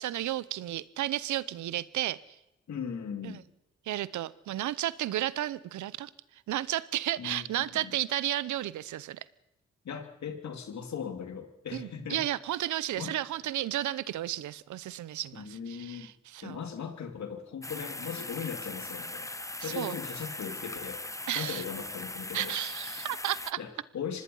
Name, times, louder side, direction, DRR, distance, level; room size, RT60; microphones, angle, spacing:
voice 1, 0.0-2.2 3.2-3.4 3.9-6.1 6.5-9.2 11.7-16.6 19.6-19.9 21.3-21.6 22.3-23.6, right 13 dB, 85° right, 19 dB, 0.8 m, -33 dB
voice 2, 2.7-3.4 7.2-7.9 9.8-12.2 13.0-13.1 15.3-16.1 16.4-19.3 19.6-21.0 21.3-22.5 23.6-24.2, left 7 dB, 70° left, 6 dB, 2.8 m, -38 dB
sound 1, 17.6-23.5, left 2 dB, 10° left, 0.9 m, -40 dB
25.0 x 19.5 x 5.6 m, 0.92 s
supercardioid pair, 55°, 29 cm